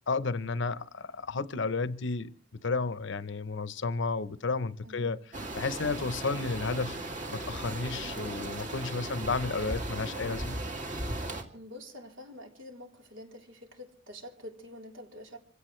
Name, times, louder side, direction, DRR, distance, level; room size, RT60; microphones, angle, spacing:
voice 1, 0.1-2.3 2.6-5.2 5.6-7.0 7.3-10.6, left 4 dB, 65° left, 0.8 m, -32 dB
voice 2, 4.8-5.2 11.5-15.4, left 1 dB, 75° right, 3.7 m, -47 dB
sound 1, 5.3-11.4, right 2 dB, 40° right, 2.4 m, -37 dB
26.0 x 16.5 x 3.2 m
head